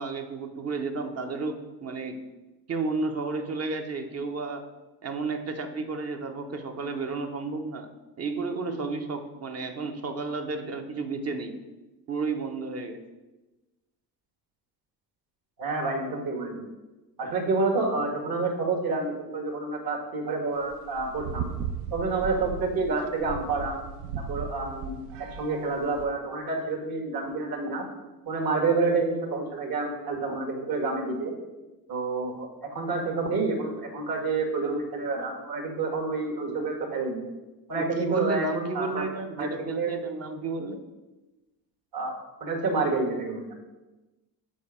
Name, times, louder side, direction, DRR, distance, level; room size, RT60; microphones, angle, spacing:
voice 1, 0.0-2.2 2.7-4.7 5.0-7.9 8.2-11.5 12.1-13.0 37.7-40.8, right 3 dB, 35° right, 6 dB, 0.8 m, -32 dB
voice 2, 15.6-16.7 17.2-21.5 21.9-23.8 24.2-25.0 25.4-27.8 28.3-31.3 31.9-37.2 37.7-39.0 39.4-39.5 39.8-39.9 41.9-42.1 42.4-43.5, right 3 dB, 50° right, 2 dB, 1.8 m, -28 dB
sound 1, 20.6-26.1, right 6 dB, 70° right, 0.6 m, -37 dB
5.3 x 4.2 x 5.0 m, 1.1 s
hypercardioid pair, 70°, 45 cm